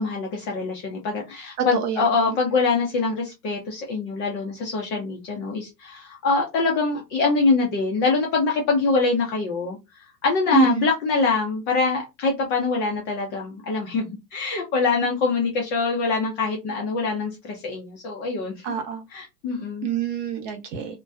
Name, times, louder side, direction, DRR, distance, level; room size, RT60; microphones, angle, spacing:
voice 1, 0.0-18.6 19.1-19.9, left 4 dB, 25° left, 0.4 m, -24 dB
voice 2, 10.5-10.8 18.6-19.0 19.8-21.0, right 5 dB, 45° right, 0.9 m, -27 dB
2.4 x 2.2 x 2.4 m
hypercardioid pair, 105°, 49 cm